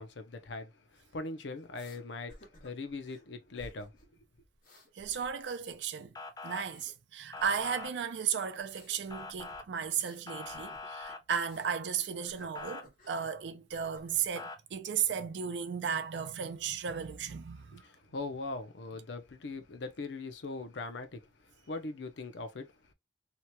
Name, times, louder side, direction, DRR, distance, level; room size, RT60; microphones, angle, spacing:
voice 1, 0.0-3.9 17.7-22.7, left 3 dB, 85° left, 0.6 m, -41 dB
sound 1, 1.7-2.0 2.3-3.2 3.5-4.1 4.3-5.7 6.0-6.9 7.4-8.0 8.6-11.8 12.2-13.3 13.7-14.3, left 1 dB, 50° left, 1.3 m, -57 dB
voice 2, 4.9-6.1 6.4-17.8, right 7 dB, 75° right, 0.4 m, -35 dB
Motor vehicle (road) / Siren, 6.2-6.6 7.3-7.9 9.1-9.6 10.3-11.2 12.6-12.8 14.4-14.6, left 3 dB, 20° left, 0.4 m, -43 dB
2.8 x 2.2 x 2.8 m
head